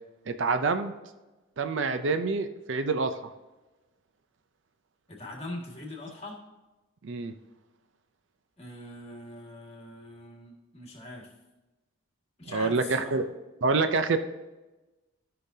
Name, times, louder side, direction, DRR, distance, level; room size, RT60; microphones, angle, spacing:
voice 1, 0.3-0.9 1.6-3.3 7.0-7.3 12.5-13.2 13.6-14.2, right 4 dB, 60° right, 9 dB, 0.5 m, -27 dB
voice 2, 5.1-6.4 8.6-11.3 12.4-13.2, left 1 dB, 30° left, -1 dB, 1.8 m, -42 dB
13.5 x 5.7 x 2.7 m, 1.1 s
head